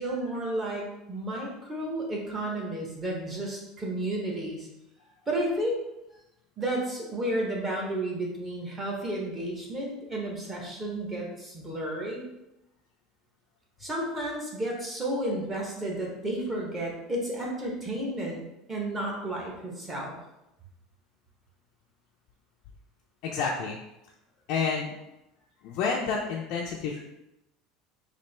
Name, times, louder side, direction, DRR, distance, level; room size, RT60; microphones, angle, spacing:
voice 1, 0.0-4.7 5.3-5.8 6.6-12.2 13.8-18.4 18.7-20.1, right 1 dB, 15° right, -2 dB, 0.7 m, -32 dB
voice 2, 23.2-23.8 24.5-24.9 25.6-27.0, left 5 dB, 50° left, -1 dB, 0.4 m, -29 dB
4.1 x 2.4 x 3.2 m, 0.90 s
cardioid pair, 175°, 0 cm